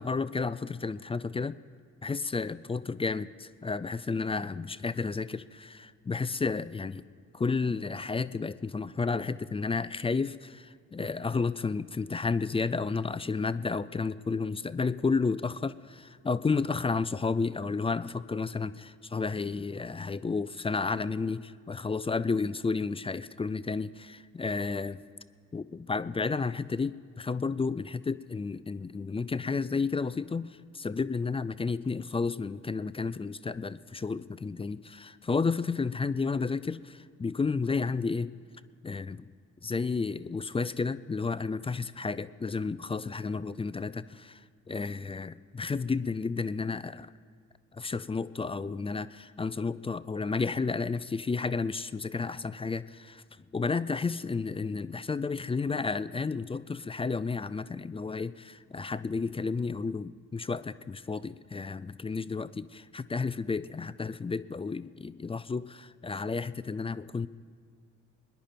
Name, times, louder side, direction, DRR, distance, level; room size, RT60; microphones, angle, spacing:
voice 1, 0.0-1.6 2.0-7.0 7.3-25.0 25.5-30.5 30.7-38.3 38.8-39.3 39.6-44.4 44.7-47.1 47.8-53.2 53.5-67.3, left 4 dB, 15° left, 15 dB, 0.4 m, -32 dB
22.5 x 10.5 x 4.4 m, 2.1 s
hypercardioid pair, 50°, 35 cm